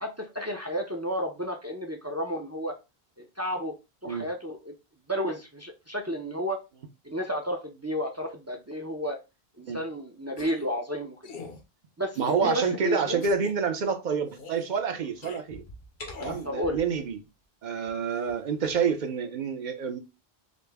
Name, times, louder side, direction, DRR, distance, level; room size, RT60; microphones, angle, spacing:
voice 1, 0.0-2.7 3.2-3.7 4.0-4.7 5.1-6.6 7.0-9.2 9.6-11.3 12.0-13.2 16.4-16.8, equal, 25° right, 0.4 m, -32 dB
sound 1, 10.4-10.7 11.2-11.6 12.2-12.7 13.2-13.5 14.3-14.7 15.2-15.4 16.0-16.5, left 4 dB, 65° left, 1.0 m, -43 dB
voice 2, 12.2-15.6 16.2-17.2 17.6-20.0, right 6 dB, 55° right, 0.7 m, -28 dB
sound 2, 14.7-17.2 17.8-19.0, left 1 dB, 90° left, 1.5 m, -47 dB
5.1 x 2.1 x 3.4 m
omnidirectional pair, 1.0 m